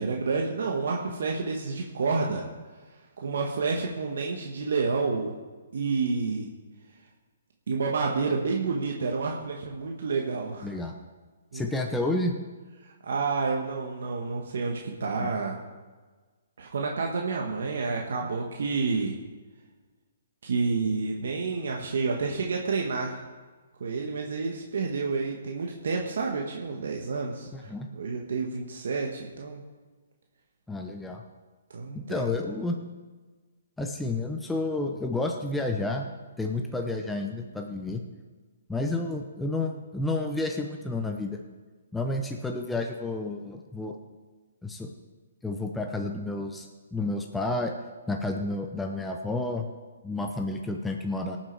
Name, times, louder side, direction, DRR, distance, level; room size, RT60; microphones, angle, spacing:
voice 1, 0.0-2.5 3.2-5.3 5.7-6.5 7.7-10.7 11.5-11.6 12.8-15.6 16.6-19.2 20.4-23.2 23.8-29.6 31.7-32.3, right 4 dB, 70° right, 0 dB, 1.5 m, -29 dB
voice 2, 10.6-10.9 11.5-12.4 15.2-15.3 27.5-27.9 30.7-31.2 31.9-32.7 33.8-36.1 36.4-38.0 38.7-41.4 41.9-43.9 44.6-44.9 45.4-47.7 48.1-49.7 50.0-51.4, left 2 dB, 5° left, 2 dB, 0.8 m, -30 dB
18.5 x 7.4 x 4.7 m, 1.3 s
hypercardioid pair, 140°, 0 cm